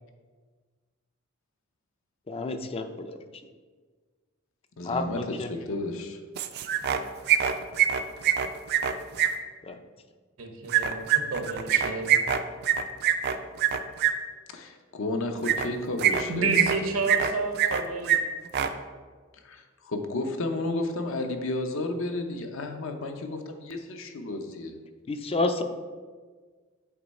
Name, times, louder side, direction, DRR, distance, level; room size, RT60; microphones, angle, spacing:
voice 1, 2.3-3.2 4.8-5.5 9.6-9.8 25.1-25.6, left 3 dB, 30° left, 8 dB, 0.4 m, -30 dB
voice 2, 4.8-6.2 14.5-16.9 19.4-24.8, left 2 dB, 70° left, 5 dB, 0.6 m, -32 dB
sound 1, 6.4-7.0 7.3-9.3 10.7-14.1 15.4-15.7 16.0-16.8 17.0-17.8 18.1-18.2 18.5-18.7, right 10 dB, 50° right, 0.4 m, -23 dB
voice 3, 10.4-12.3 16.3-18.2, right 3 dB, 80° right, 4 dB, 0.8 m, -30 dB
8.0 x 3.1 x 4.1 m, 1.5 s
head